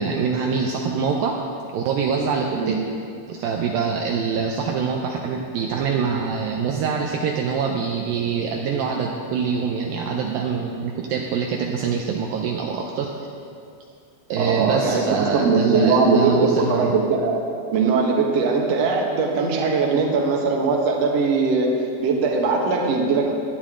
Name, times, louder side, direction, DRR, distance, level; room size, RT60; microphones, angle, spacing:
voice 1, 0.0-1.4 1.7-2.8 3.3-13.1 14.3-16.9, right 5 dB, 85° right, 1 dB, 2.0 m, -24 dB
voice 2, 14.4-17.4 17.7-21.7 22.0-23.3, right 4 dB, 60° right, -1 dB, 1.8 m, -20 dB
19.0 x 12.0 x 3.8 m, 2.4 s
omnidirectional pair, 5.2 m